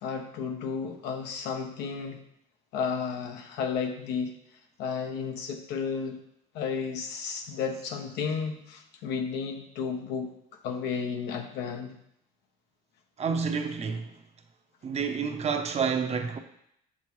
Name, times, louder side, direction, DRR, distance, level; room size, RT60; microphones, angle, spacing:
voice 1, 0.0-2.2 2.7-4.4 4.8-6.2 6.5-10.4 10.6-12.0, left 6 dB, 85° left, 0.9 m, -33 dB
voice 2, 13.2-14.1 14.8-16.4, right 6 dB, 40° right, 0.8 m, -29 dB
6.9 x 6.1 x 3.1 m
cardioid pair, 110°, 17 cm